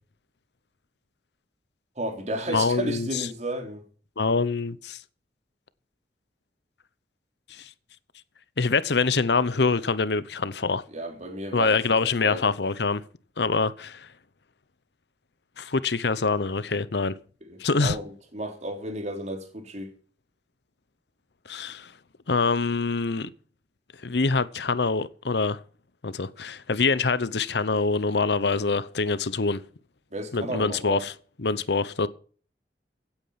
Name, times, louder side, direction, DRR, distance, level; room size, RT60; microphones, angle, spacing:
voice 1, 2.0-3.8 10.9-12.4 17.5-19.9 30.1-31.0, right 1 dB, 40° right, 3.8 m, -33 dB
voice 2, 2.5-3.3 4.2-5.0 7.5-7.7 8.6-10.8 11.5-13.0 13.4-14.1 15.6-17.2 17.6-18.0 21.5-21.9 22.3-23.3 24.0-25.6 26.0-29.6 30.3-31.1 31.4-32.1, left 4 dB, 70° left, 0.8 m, -25 dB
16.5 x 8.9 x 5.8 m
head